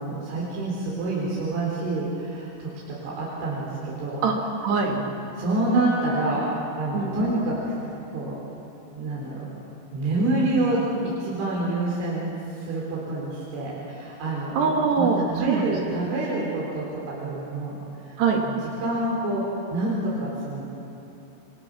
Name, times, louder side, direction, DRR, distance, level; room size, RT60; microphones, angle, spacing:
voice 1, 0.0-4.2 4.9-5.0 5.3-6.5 6.8-7.7 8.1-8.4 8.9-9.4 9.9-14.6 15.0-17.8 18.1-18.2 18.4-19.5 19.7-20.6, right 2 dB, 90° right, -5 dB, 6.5 m, -27 dB
voice 2, 4.2-5.0 6.9-7.3 14.5-15.7 18.2-18.4, right 5 dB, 65° right, 0 dB, 4.6 m, -23 dB
27.5 x 26.0 x 6.4 m, 2.8 s
omnidirectional pair, 5.3 m